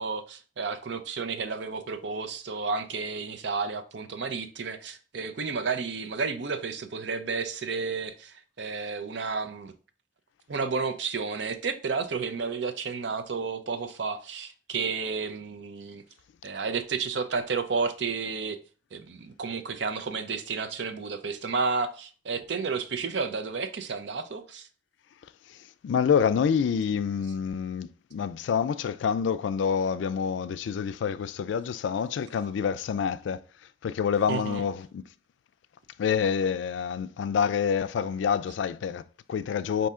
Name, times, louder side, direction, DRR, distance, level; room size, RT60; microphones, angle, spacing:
voice 1, 0.0-9.7 10.5-16.0 16.4-18.6 18.9-24.7 34.3-34.6, right 4 dB, 80° right, 0.6 m, -31 dB
voice 2, 25.8-33.4 33.8-35.0 36.0-39.9, left 7 dB, 90° left, 0.3 m, -27 dB
5.4 x 2.7 x 3.6 m
head